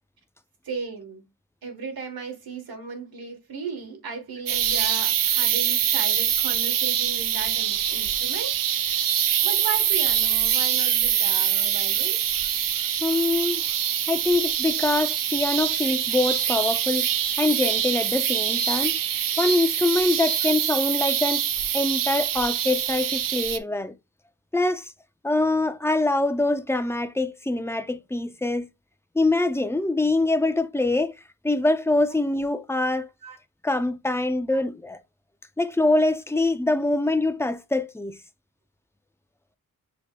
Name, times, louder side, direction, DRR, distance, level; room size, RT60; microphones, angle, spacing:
voice 1, 0.6-1.2 1.6-12.2 20.4-20.6 33.2-33.4 34.5-34.6, right 5 dB, 85° right, 1.4 m, -36 dB
sound 1, 4.5-23.6, right 9 dB, 70° right, 0.5 m, -24 dB
voice 2, 13.0-13.6 14.1-17.1 17.4-18.9 19.4-21.4 21.7-23.9 24.5-24.8 25.2-28.7 29.2-31.1 31.4-33.1 33.6-35.0 35.6-38.2, left 2 dB, 10° left, 0.4 m, -24 dB
6.4 x 3.5 x 2.2 m
wide cardioid pair, 85°, 35 cm